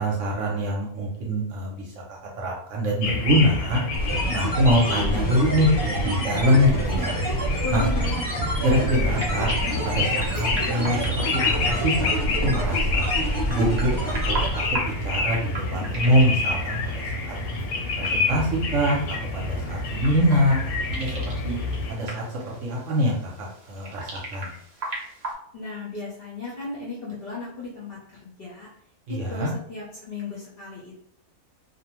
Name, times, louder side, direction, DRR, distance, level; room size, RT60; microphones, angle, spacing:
voice 1, 0.0-3.8 4.3-7.2 7.7-7.8 8.6-9.5 9.8-13.1 13.5-17.3 18.0-19.0 19.3-20.6 20.9-21.1 21.4-21.6 21.9-24.5 29.1-29.5, equal, 65° right, -2 dB, 0.9 m, -24 dB
sound 1, 3.0-21.9, left 2 dB, 80° left, 1.0 m, -28 dB
sound 2, 3.9-14.8, right 1 dB, 15° right, 0.8 m, -27 dB
voice 2, 7.6-8.2 25.5-28.7 29.1-31.1, left 3 dB, 55° left, -5 dB, 0.7 m, -35 dB
sound 3, 8.8-25.3, right 2 dB, 45° right, 0.5 m, -39 dB
2.5 x 2.1 x 2.9 m, 0.66 s
omnidirectional pair, 1.6 m